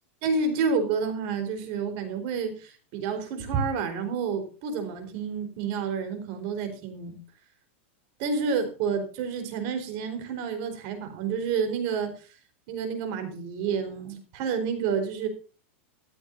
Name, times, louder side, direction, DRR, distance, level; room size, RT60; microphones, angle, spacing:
voice 1, 0.2-7.2 8.2-12.1 12.7-15.3, right 5 dB, 50° right, 8 dB, 4.3 m, -29 dB
14.5 x 12.5 x 2.7 m, 0.35 s
supercardioid pair, 145°, 7 cm